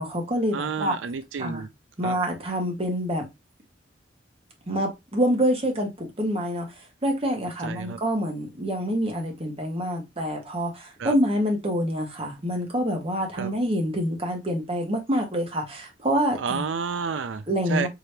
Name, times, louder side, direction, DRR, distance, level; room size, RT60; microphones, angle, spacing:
voice 1, 0.0-0.9 1.4-1.6 2.0-3.3 4.7-6.7 7.0-16.6 17.5-17.9, equal, 30° right, 1.3 m, -26 dB
voice 2, 0.5-1.7 2.0-2.2 7.6-8.0 11.0-11.1 13.4-13.5 16.4-17.9, right 5 dB, 85° right, 0.4 m, -30 dB
4.8 x 2.9 x 3.3 m
head